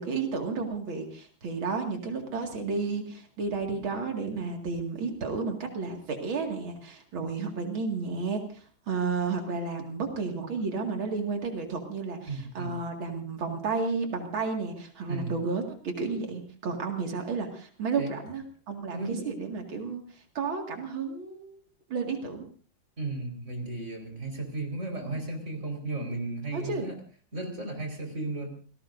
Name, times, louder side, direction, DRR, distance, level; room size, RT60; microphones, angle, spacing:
voice 1, 0.0-21.5 21.9-22.5 26.5-26.9, right 4 dB, 90° right, 3 dB, 3.0 m, -32 dB
voice 2, 12.3-12.7 15.1-15.4 18.0-18.1 18.9-19.1 23.0-27.0 27.3-28.5, right 2 dB, 35° right, 3 dB, 5.0 m, -34 dB
28.5 x 19.5 x 2.6 m, 0.40 s
omnidirectional pair, 2.1 m